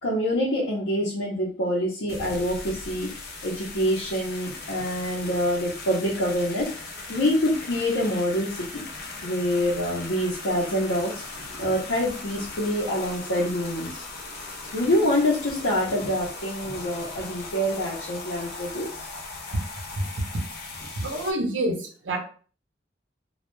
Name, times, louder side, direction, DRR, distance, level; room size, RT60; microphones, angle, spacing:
voice 1, 0.0-3.1 3.4-6.7 7.1-8.8 9.2-14.0 14.7-18.9, equal, 90° left, -6 dB, 0.7 m, -26 dB
sound 1, 2.1-21.3, left 3 dB, 55° left, 0.6 m, -38 dB
voice 2, 21.0-22.2, right 1 dB, 80° right, 3 dB, 0.6 m, -27 dB
2.2 x 2.1 x 3.0 m, 0.40 s
head